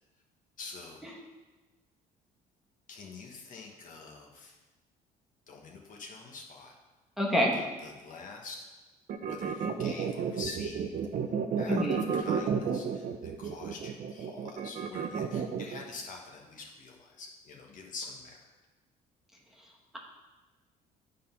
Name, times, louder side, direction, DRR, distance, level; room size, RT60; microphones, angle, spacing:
voice 1, 0.6-1.0 2.9-4.6 5.5-6.7 7.5-8.6 9.2-10.9 11.6-18.4, left 4 dB, 50° left, 1 dB, 1.2 m, -46 dB
voice 2, 7.2-7.5 11.7-12.0, equal, ahead, -3 dB, 1.3 m, -26 dB
sound 1, 9.1-15.8, right 7 dB, 50° right, 0.6 m, -31 dB
8.5 x 3.9 x 5.6 m, 1.2 s
cardioid pair, 110°, 17 cm